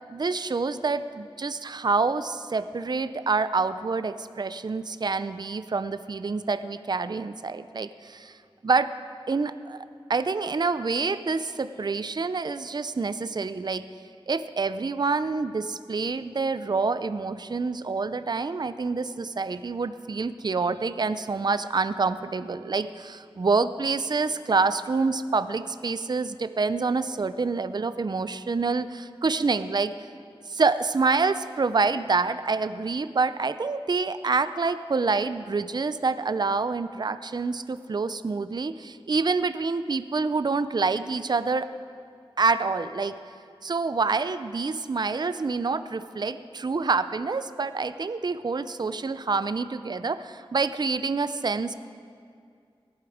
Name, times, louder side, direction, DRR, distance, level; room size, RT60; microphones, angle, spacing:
voice 1, 0.1-8.3 8.6-8.9 9.3-9.8 10.1-13.9 14.3-29.9 30.5-41.7 42.4-43.2 43.6-51.7, right 4 dB, 50° right, 12 dB, 0.4 m, -27 dB
17.0 x 11.0 x 4.9 m, 2.3 s
wide cardioid pair, 70°, 10 cm